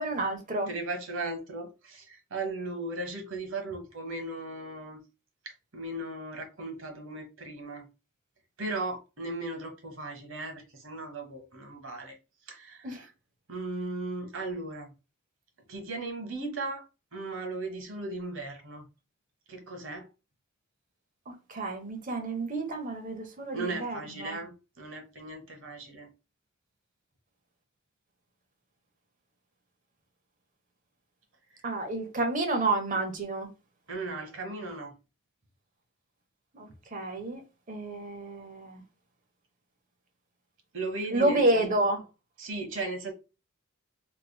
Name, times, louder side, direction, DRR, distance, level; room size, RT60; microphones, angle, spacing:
voice 1, 0.0-0.7 12.8-13.0 21.3-24.4 31.6-33.5 36.5-37.4 37.7-38.8 41.1-42.0, right 2 dB, 40° right, 1.0 m, -29 dB
voice 2, 0.7-5.0 5.4-7.9 8.6-12.2 12.5-13.1 13.5-14.9 15.7-16.8 17.1-18.8 19.5-20.1 23.5-26.1 31.5-31.6 33.9-34.9 40.7-41.7 42.4-43.1, right 2 dB, 65° right, 1.2 m, -37 dB
3.4 x 3.3 x 2.2 m
head